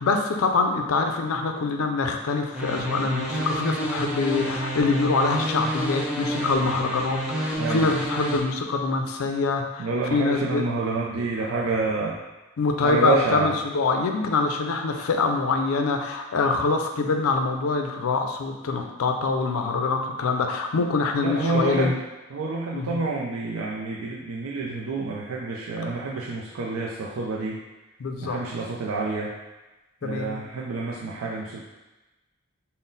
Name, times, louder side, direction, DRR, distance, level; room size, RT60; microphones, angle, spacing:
voice 1, 0.0-10.6 12.6-22.0 22.7-23.0 28.0-28.4 30.0-30.4, left 4 dB, 85° left, 5 dB, 0.4 m, -25 dB
sound 1, 2.5-8.4, right 1 dB, 5° right, 0.4 m, -29 dB
voice 2, 7.6-7.9 9.8-12.2 12.8-13.6 21.2-21.9 22.3-27.6 28.2-29.3 30.0-31.6, right 3 dB, 80° right, -3 dB, 0.4 m, -28 dB
3.8 x 2.1 x 3.8 m, 1.1 s
head